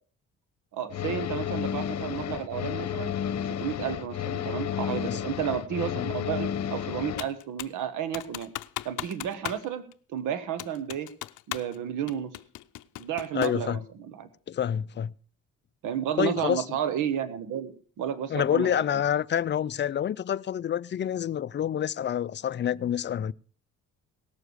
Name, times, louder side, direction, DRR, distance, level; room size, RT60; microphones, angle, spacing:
voice 1, 0.7-3.1 3.6-8.5 8.8-9.8 10.1-11.1 11.5-12.3 13.0-14.3 15.8-19.0, right 9 dB, 85° right, 1.3 m, -32 dB
sound 1, 0.9-7.3, left 9 dB, 60° left, 1.0 m, -32 dB
Computer keyboard, 7.2-7.8 8.1-9.7 9.9-10.0 10.6-11.8 12.1-13.6, left 16 dB, 80° left, 0.6 m, -37 dB
voice 2, 13.3-13.8 14.5-15.1 16.2-16.6 18.3-23.3, left 10 dB, 35° left, 0.5 m, -27 dB
18.0 x 7.1 x 6.3 m
cardioid pair, 90°, 30 cm